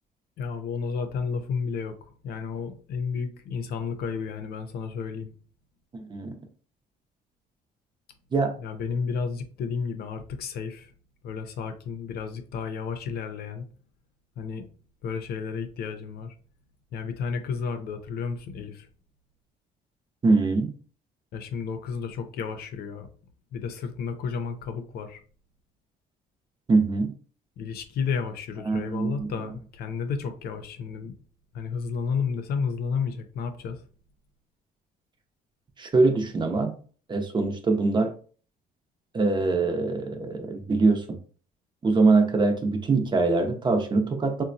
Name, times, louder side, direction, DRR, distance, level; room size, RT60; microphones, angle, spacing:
voice 1, 0.4-2.0 2.2-5.3 8.6-10.9 11.2-13.7 14.4-14.7 15.0-16.3 16.9-18.9 21.3-23.1 23.5-25.2 27.6-31.1 31.5-33.8, left 5 dB, 65° left, 0.6 m, -32 dB
voice 2, 5.9-6.4 8.3-8.5 20.2-20.7 26.7-27.1 28.7-29.3 35.8-36.8 37.1-38.1 39.1-41.2 41.8-44.4, right 3 dB, 25° right, 0.7 m, -23 dB
3.9 x 2.2 x 2.6 m
cardioid pair, 110°, 17 cm